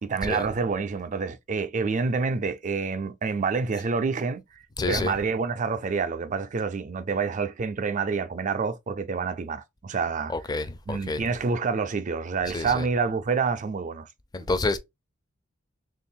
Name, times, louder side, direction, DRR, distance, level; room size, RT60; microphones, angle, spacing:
voice 1, 0.0-4.4 4.9-10.3 10.9-14.1, right 5 dB, 40° right, 0.4 m, -27 dB
voice 2, 4.8-5.2 10.3-11.3 12.5-12.9 14.3-14.8, left 2 dB, 20° left, 0.4 m, -28 dB
3.4 x 2.4 x 4.3 m
head